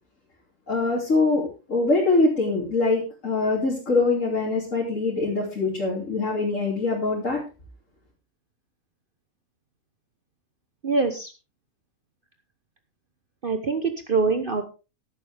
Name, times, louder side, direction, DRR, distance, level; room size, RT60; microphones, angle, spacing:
voice 1, 0.7-7.4, left 3 dB, 60° left, -3 dB, 3.5 m, -23 dB
voice 2, 10.8-11.3 13.4-14.6, right 4 dB, 40° right, 7 dB, 1.2 m, -24 dB
14.5 x 11.5 x 3.5 m, 0.30 s
omnidirectional pair, 1.5 m